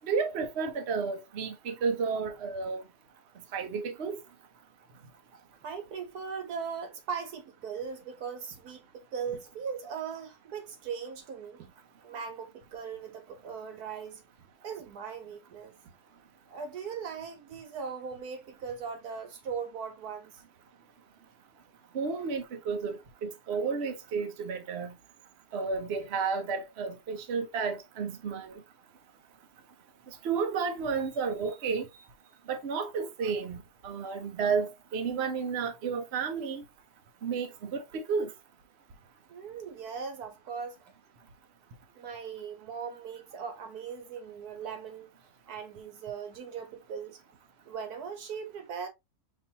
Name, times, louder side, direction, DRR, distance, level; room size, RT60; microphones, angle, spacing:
voice 1, 0.0-2.8 3.5-4.2 21.9-24.9 25.5-28.6 30.1-31.9 32.5-36.6 37.2-38.3, right 5 dB, 50° right, 0.9 m, -32 dB
voice 2, 5.6-11.7 12.0-14.2 14.6-15.7 16.5-20.4 39.3-40.8 41.9-45.1 45.5-47.2 47.6-48.9, right 6 dB, 80° right, 1.5 m, -39 dB
5.3 x 2.9 x 2.8 m
omnidirectional pair, 1.6 m